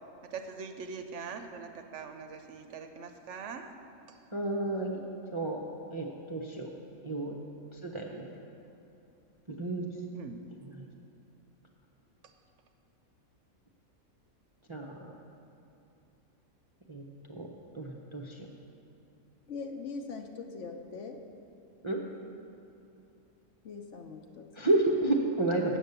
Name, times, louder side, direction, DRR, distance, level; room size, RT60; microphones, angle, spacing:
voice 1, 0.2-3.7 4.1-4.2 10.1-10.4 12.2-12.3 17.9-18.0, right 5 dB, 70° right, 7 dB, 0.8 m, -42 dB
voice 2, 4.3-5.0 5.3-5.6 5.9-6.7 7.0-7.3 7.7-8.3 9.5-9.9 10.6-10.7 14.7-15.1 16.9-17.0 17.3-17.5 17.7-18.5 21.8-22.0 24.6-25.8, right 2 dB, 35° right, -1 dB, 0.5 m, -31 dB
voice 3, 19.5-21.2 23.6-24.7, left 4 dB, 65° left, 4 dB, 1.0 m, -41 dB
8.2 x 7.9 x 6.7 m, 2.8 s
omnidirectional pair, 1.5 m